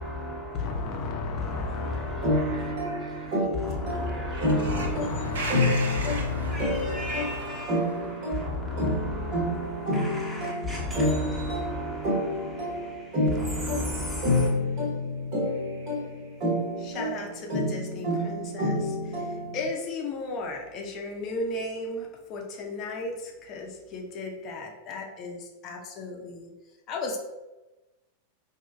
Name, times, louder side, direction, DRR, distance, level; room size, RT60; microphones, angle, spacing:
voice 1, 0.0-5.5 6.0-14.5, left 2 dB, 5° right, 1.0 m, -35 dB
voice 2, 0.5-3.5 4.6-6.9 12.5-13.3 16.8-26.5 26.9-27.2, left 3 dB, 35° left, 0.6 m, -36 dB
sound 1, 2.2-19.7, left 1 dB, 40° right, 1.1 m, -29 dB
voice 3, 2.3-3.4 4.3-8.1 15.4-16.4, right 3 dB, 65° right, 0.6 m, -39 dB
5.0 x 2.7 x 2.3 m
figure-of-eight pair, 90°, 0 cm